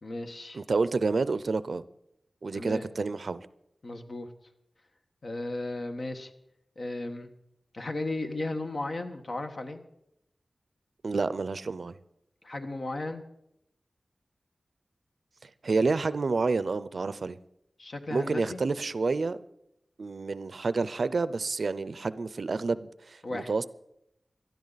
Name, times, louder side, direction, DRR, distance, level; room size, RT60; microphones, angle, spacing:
voice 1, 0.0-0.6 2.5-2.9 3.8-4.3 5.2-6.3 6.8-7.3 7.7-9.8 12.4-13.2 17.8-18.6 23.2-23.5, left 2 dB, 60° left, 5 dB, 1.4 m, -35 dB
voice 2, 0.5-1.8 2.4-3.5 11.0-12.0 15.4-17.4 18.1-19.4 20.0-23.6, right 4 dB, 65° right, 16 dB, 0.5 m, -29 dB
18.0 x 12.5 x 4.1 m, 0.80 s
wide cardioid pair, 65°, 0 cm